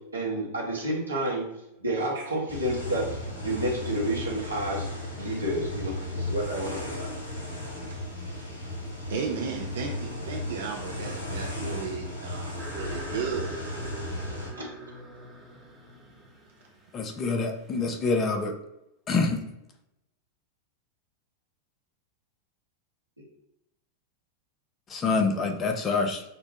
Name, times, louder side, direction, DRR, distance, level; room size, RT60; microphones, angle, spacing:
voice 1, 0.1-1.4 1.8-3.0 3.4-4.9 5.2-7.1 14.5-14.6, right 1 dB, 80° right, -3 dB, 1.2 m, -30 dB
sound 1, 2.5-14.5, left 1 dB, 70° left, 1.0 m, -35 dB
voice 2, 9.1-13.6, right 6 dB, 60° right, 0 dB, 0.5 m, -34 dB
sound 2, 12.6-18.4, right 2 dB, 10° right, 1.0 m, -45 dB
voice 3, 16.9-18.5 19.1-19.4 24.9-26.2, left 4 dB, 25° left, 5 dB, 0.6 m, -26 dB
6.7 x 2.2 x 2.8 m, 0.87 s
figure-of-eight pair, 90°, 0 cm